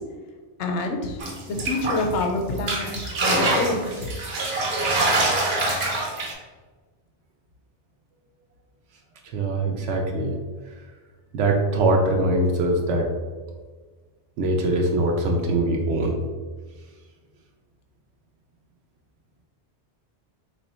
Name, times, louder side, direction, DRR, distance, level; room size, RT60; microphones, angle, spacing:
voice 1, 0.6-4.1, left 2 dB, 85° left, 4 dB, 0.9 m, -27 dB
sound 1, 1.2-2.2 2.6-6.3, right 2 dB, 65° right, 0.9 m, -24 dB
voice 2, 9.2-10.3 10.7-10.8 11.3-13.1 14.4-16.2, right 2 dB, 90° right, 1 dB, 0.9 m, -22 dB
3.1 x 2.5 x 4.1 m, 1.4 s
omnidirectional pair, 1.2 m